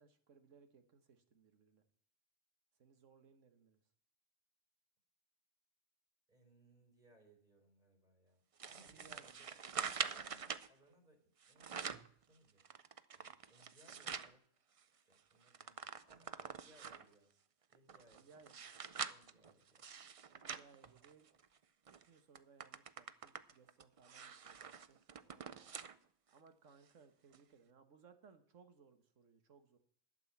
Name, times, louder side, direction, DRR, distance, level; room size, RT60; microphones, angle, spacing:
voice 1, 0.0-1.8 2.8-3.8 8.8-9.6 18.1-18.8 20.3-21.3 22.0-25.0 26.3-29.8, right 5 dB, 80° right, 9 dB, 1.6 m, -65 dB
voice 2, 6.3-9.6 9.9-12.6 13.1-14.5 15.0-17.3 17.7-18.3 19.1-19.8 25.2-25.8, right 1 dB, 40° right, 1 dB, 3.9 m, -69 dB
sound 1, 8.6-10.7 11.4-12.1 12.6-14.3 14.8-14.9 15.1-17.1 17.7-21.5 21.9-22.0 22.3-26.0 26.4-26.5 27.3-27.4, right 6 dB, 55° right, 0.3 m, -45 dB
11.5 x 7.0 x 7.2 m, 0.63 s
omnidirectional pair, 1.3 m